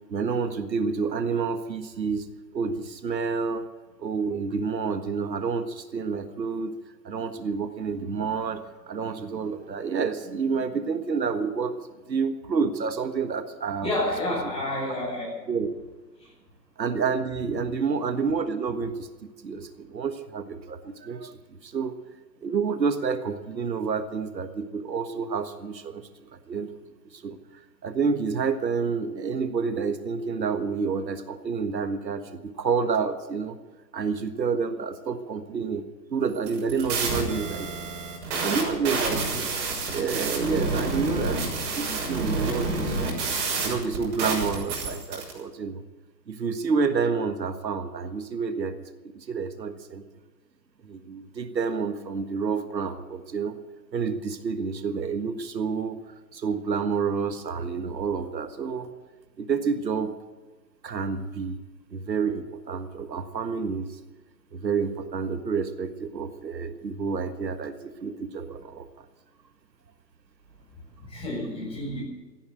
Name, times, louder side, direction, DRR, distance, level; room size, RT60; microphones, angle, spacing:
voice 1, 0.1-2.3 2.5-3.7 4.0-6.7 7.0-11.8 12.1-13.9 14.3-14.4 15.5-15.7 16.8-21.9 22.4-26.7 27.1-33.6 33.9-37.7 38.4-39.5 39.9-41.4 41.7-43.2 43.6-45.8 46.3-50.0 50.8-53.6 53.9-56.0 56.3-58.9 59.4-60.1 60.8-61.6 61.9-63.9 64.5-69.1, right 5 dB, 85° right, 9 dB, 1.6 m, -29 dB
voice 2, 13.8-15.3 16.2-16.3 71.0-72.0, left 1 dB, 10° left, -4 dB, 6.9 m, -30 dB
sound 1, 36.4-45.3, right 3 dB, 45° right, 6.3 m, -29 dB
16.0 x 10.5 x 7.9 m, 1.3 s
hypercardioid pair, 140°, 50 cm